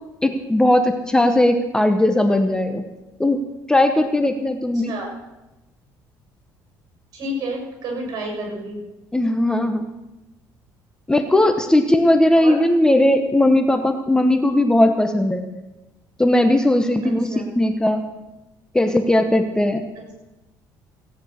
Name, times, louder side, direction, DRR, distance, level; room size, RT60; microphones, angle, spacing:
voice 1, 0.2-2.8 3.2-3.4 3.7-4.9 9.1-9.8 11.1-15.4 16.2-18.0 18.7-19.8, left 1 dB, 10° left, 7 dB, 0.9 m, -18 dB
voice 2, 4.7-5.1 7.1-8.8 12.3-12.5 17.0-17.4, right 1 dB, 55° right, 1 dB, 6.9 m, -30 dB
17.0 x 9.2 x 6.4 m, 1.0 s
cardioid pair, 120°, 8 cm